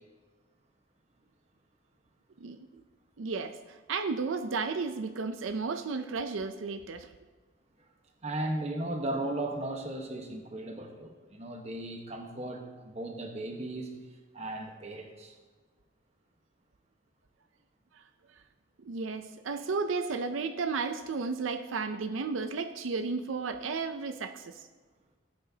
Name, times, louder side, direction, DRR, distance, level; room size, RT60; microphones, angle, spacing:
voice 1, 2.4-2.8 3.2-7.1 17.9-18.0 18.8-24.7, right 4 dB, 85° right, 9 dB, 0.5 m, -33 dB
voice 2, 8.2-13.9 14.3-15.3, right 1 dB, 35° right, 3 dB, 1.2 m, -36 dB
15.5 x 8.7 x 2.8 m, 1.3 s
head